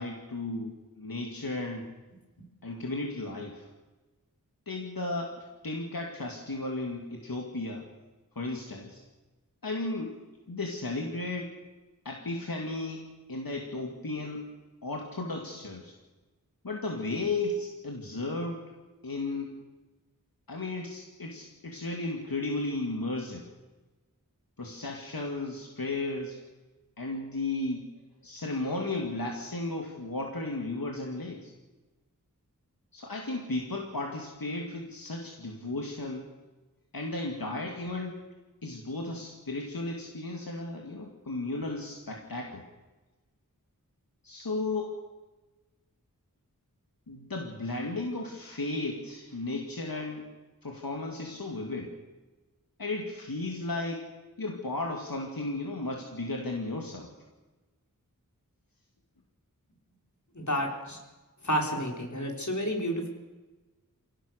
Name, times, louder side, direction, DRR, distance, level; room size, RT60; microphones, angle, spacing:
voice 1, 0.0-1.9 2.6-3.7 4.7-7.9 8.3-9.0 9.6-10.2 10.5-11.5 12.0-14.5 14.8-15.9 16.6-18.6 19.0-19.5 20.5-23.5 24.6-26.4 27.0-27.9 28.2-31.5 32.9-36.3 36.9-38.2 38.6-42.6 44.2-44.9 47.1-50.3 50.6-52.0 52.8-54.1 54.4-57.1, left 2 dB, 80° left, 1 dB, 2.7 m, -34 dB
voice 2, 60.3-61.0 61.4-63.1, equal, 55° left, 1 dB, 5.0 m, -30 dB
26.5 x 17.5 x 6.7 m, 1.2 s
wide cardioid pair, 45°, 34 cm